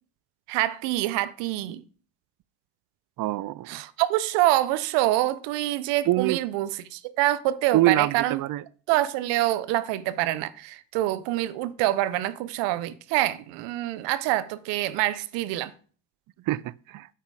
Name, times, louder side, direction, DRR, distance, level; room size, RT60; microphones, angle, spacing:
voice 1, 0.5-1.8 3.7-8.4 8.9-15.7, right 15 dB, 90° right, 0.7 m, -26 dB
voice 2, 3.2-3.8 6.1-6.4 7.7-8.6 16.5-17.1, right 16 dB, 50° right, 0.5 m, -25 dB
8.7 x 5.2 x 4.8 m
supercardioid pair, 80°, 42 cm